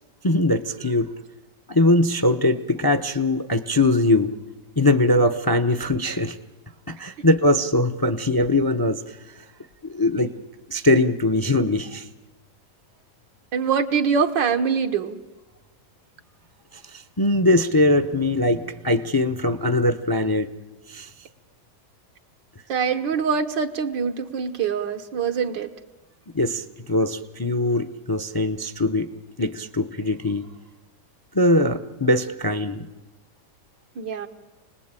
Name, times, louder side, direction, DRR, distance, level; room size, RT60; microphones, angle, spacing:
voice 1, 0.2-1.1 1.7-4.3 4.8-6.4 6.9-9.2 9.8-10.3 10.7-12.1 16.7-20.5 20.9-21.1 26.3-29.1 29.4-30.5 31.3-32.8, left 1 dB, 35° left, 10 dB, 0.3 m, -21 dB
voice 2, 13.5-15.2 22.7-25.7 34.0-34.3, right 6 dB, 85° right, 5 dB, 1.9 m, -24 dB
28.5 x 20.0 x 8.9 m, 1.1 s
omnidirectional pair, 1.9 m